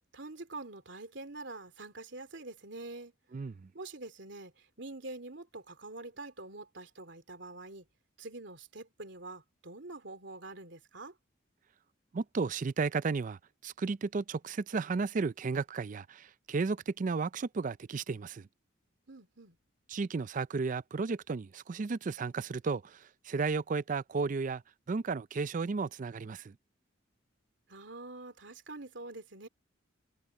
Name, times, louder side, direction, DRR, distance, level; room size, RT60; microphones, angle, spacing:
voice 1, 0.1-3.1 3.7-7.8 8.2-11.1 19.1-19.6 27.7-29.5, right 2 dB, 65° right, 3.3 m, -45 dB
voice 2, 3.3-3.7 12.1-18.5 19.9-24.6 24.9-26.6, right 4 dB, 40° right, 0.4 m, -34 dB
head